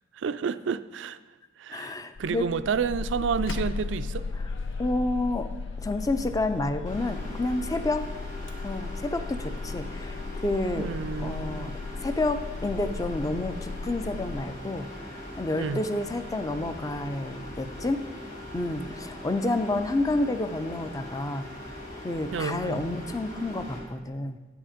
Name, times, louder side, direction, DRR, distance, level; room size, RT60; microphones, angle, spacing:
voice 1, 0.1-1.2 1.6-4.2 10.7-11.7 15.6-15.8 22.3-22.8, right 6 dB, 70° right, 13 dB, 0.4 m, -30 dB
voice 2, 1.7-2.5 4.8-5.5 5.8-8.1 8.6-10.9 11.2-11.7 12.0-14.9 15.4-18.0 18.5-21.4 22.0-24.4, left 2 dB, 20° left, 10 dB, 0.5 m, -29 dB
sound 1, 2.2-14.4, left 4 dB, 85° left, 0.5 m, -36 dB
Microwave oven, 3.0-9.0, left 2 dB, 70° left, 1.0 m, -48 dB
sound 2, 6.9-23.8, left 1 dB, 40° left, 2.5 m, -41 dB
10.0 x 8.0 x 5.0 m, 1.2 s
head